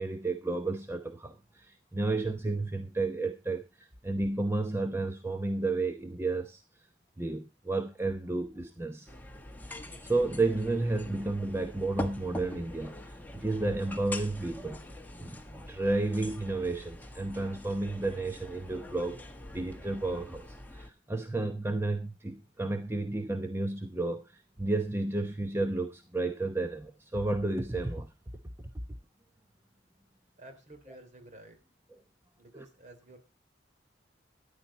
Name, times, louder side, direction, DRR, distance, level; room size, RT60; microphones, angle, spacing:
voice 1, 0.0-6.6 7.2-9.1 9.7-14.8 15.2-19.2 19.5-28.1 32.5-32.6, right 2 dB, 15° right, 6 dB, 0.8 m, -32 dB
sound 1, 9.1-20.9, left 1 dB, 10° left, 1.4 m, -44 dB
voice 2, 30.4-31.6 32.4-33.2, right 1 dB, 40° right, 6 dB, 3.2 m, -51 dB
13.5 x 10.5 x 4.2 m, 0.27 s
head